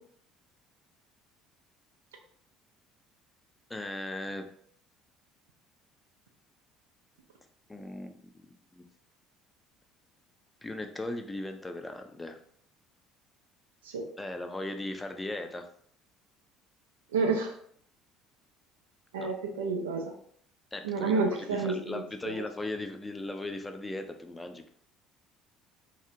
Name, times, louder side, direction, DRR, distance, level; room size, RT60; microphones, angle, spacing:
voice 1, 3.7-4.5 7.7-8.8 10.6-12.4 14.2-15.7 19.2-19.3 20.7-24.7, left 2 dB, 15° left, 6 dB, 0.4 m, -38 dB
voice 2, 17.1-17.5 19.1-20.1 20.8-22.4, right 4 dB, 85° right, 2 dB, 0.4 m, -30 dB
2.6 x 2.0 x 2.6 m, 0.63 s
hypercardioid pair, 65°, 0 cm